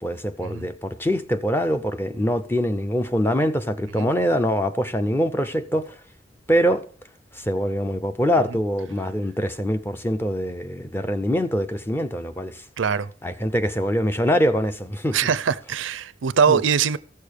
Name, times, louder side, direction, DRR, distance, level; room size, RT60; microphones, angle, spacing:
voice 1, 0.0-6.0 6.5-6.8 7.3-12.6 13.2-15.2 16.5-16.6, equal, 10° left, 0.5 m, -24 dB
voice 2, 12.8-13.1 15.1-17.0, right 6 dB, 85° right, 0.5 m, -22 dB
14.5 x 6.6 x 5.0 m
head